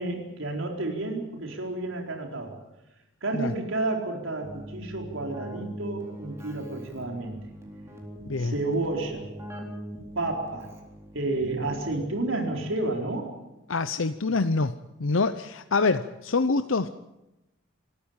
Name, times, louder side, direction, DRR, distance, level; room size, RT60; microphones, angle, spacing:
voice 1, 0.0-2.6 3.2-7.4 8.4-9.3 10.1-10.7 11.1-13.3, right 2 dB, 75° right, 1 dB, 4.3 m, -30 dB
Keyboard (musical), 4.4-12.3, equal, 15° right, 4.0 m, -42 dB
voice 2, 8.2-8.6 13.7-16.9, left 3 dB, 75° left, 10 dB, 0.7 m, -26 dB
26.5 x 13.5 x 8.9 m, 0.96 s
head